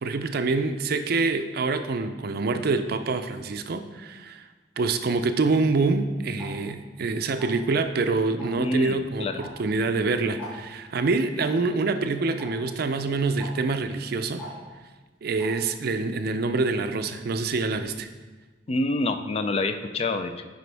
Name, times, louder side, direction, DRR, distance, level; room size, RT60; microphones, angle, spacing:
voice 1, 0.0-4.4 4.8-14.4 15.2-18.1, right 3 dB, 55° right, 8 dB, 0.4 m, -26 dB
Tick-tock, 6.4-6.5 7.4-7.7 8.4-8.6 9.4-9.5 9.8-9.9 10.4-10.5 11.4-11.5 12.4-12.5 13.4-13.5 14.4-14.5 15.4-15.5, equal, 5° left, 2.3 m, -39 dB
voice 2, 8.6-9.4 18.7-20.4, left 2 dB, 35° left, 8 dB, 0.4 m, -27 dB
9.1 x 5.2 x 3.4 m, 1.3 s
head